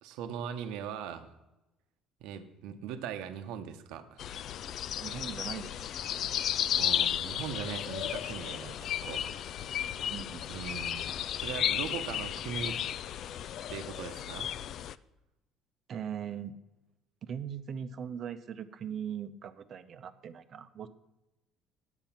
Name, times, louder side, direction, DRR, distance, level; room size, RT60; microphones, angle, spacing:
voice 1, 0.0-1.3 2.2-4.2 6.8-9.6 10.5-12.8 13.7-14.5, right 8 dB, 85° right, 8 dB, 0.9 m, -40 dB
sound 1, 4.2-15.0, left 10 dB, 60° left, 0.3 m, -34 dB
voice 2, 5.0-5.9 10.1-10.4 15.9-16.5 17.2-20.9, right 8 dB, 50° right, 11 dB, 0.7 m, -40 dB
9.0 x 8.1 x 5.8 m, 0.98 s
cardioid pair, 100°, 0 cm